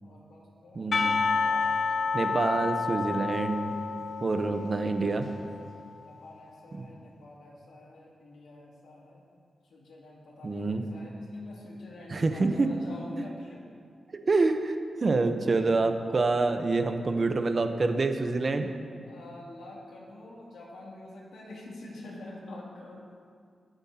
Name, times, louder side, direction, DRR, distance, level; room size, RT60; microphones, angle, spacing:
voice 1, 0.0-1.8 2.3-2.4 6.0-9.2 9.7-13.6 14.2-14.3 19.0-23.0, left 2 dB, 90° left, -4 dB, 2.6 m, -47 dB
voice 2, 0.7-1.2 2.1-3.7 4.2-5.3 6.7-6.8 10.4-10.8 12.1-12.7 14.3-18.7, right 3 dB, 45° right, 7 dB, 0.9 m, -27 dB
Percussion, 0.9-5.8, left 4 dB, 55° left, 0.5 m, -30 dB
21.5 x 7.8 x 2.9 m, 2.2 s
cardioid pair, 85°, 0 cm